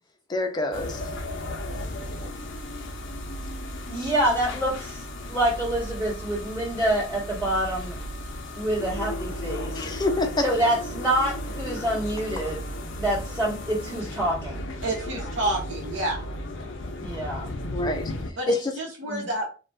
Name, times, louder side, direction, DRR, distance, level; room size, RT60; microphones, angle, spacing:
voice 1, 0.3-1.0 9.7-10.5 17.7-18.7, left 2 dB, 20° left, 0.5 m, -27 dB
sound 1, 0.7-18.3, left 1 dB, 75° left, 0.5 m, -35 dB
voice 2, 3.9-8.0 8.6-9.9 10.4-12.6 13.0-14.6 17.0-17.5 19.1-19.3, right 1 dB, 20° right, 1.2 m, -27 dB
voice 3, 14.8-16.2 18.4-19.5, right 1 dB, 75° right, 0.8 m, -29 dB
2.5 x 2.2 x 3.3 m
head